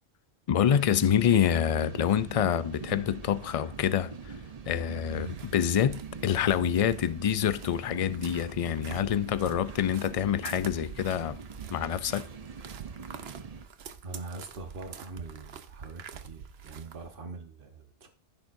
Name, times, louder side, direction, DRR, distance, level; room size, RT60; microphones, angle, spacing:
voice 1, 0.5-4.4 4.7-5.3 5.5-11.4 11.7-12.3, left 9 dB, 50° left, 0.5 m, -26 dB
sound 1, 0.6-13.7, right 5 dB, 40° right, 0.8 m, -43 dB
sound 2, 5.3-17.1, right 7 dB, 90° right, 1.0 m, -47 dB
voice 2, 14.0-18.1, right 3 dB, 60° right, 1.4 m, -42 dB
15.0 x 6.8 x 2.6 m
omnidirectional pair, 1.0 m